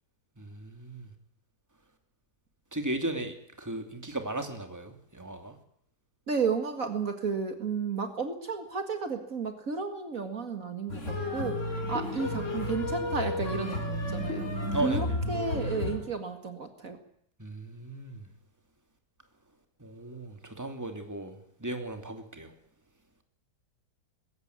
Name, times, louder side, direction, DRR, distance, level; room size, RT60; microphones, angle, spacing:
voice 1, 0.4-1.1 2.7-5.6 14.7-15.2 17.4-18.2 19.8-22.5, right 2 dB, 10° right, 6 dB, 2.8 m, -36 dB
voice 2, 6.3-17.0, right 5 dB, 55° right, 7 dB, 2.2 m, -33 dB
sound 1, 10.9-16.0, left 1 dB, 45° left, 4.9 m, -32 dB
21.5 x 16.0 x 9.6 m, 0.72 s
omnidirectional pair, 1.8 m